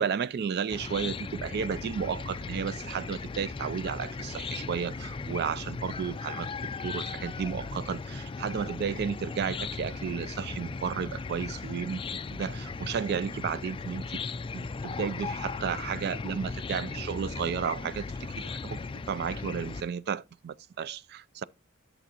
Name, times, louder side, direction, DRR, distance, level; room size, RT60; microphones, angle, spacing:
voice 1, 0.0-6.5 6.8-18.1 18.4-18.8 19.1-21.4, right 7 dB, 50° right, 0.3 m, -33 dB
Chicken rooster / Cricket, 0.7-19.8, left 4 dB, 25° left, 0.3 m, -37 dB
11.0 x 6.8 x 2.9 m
head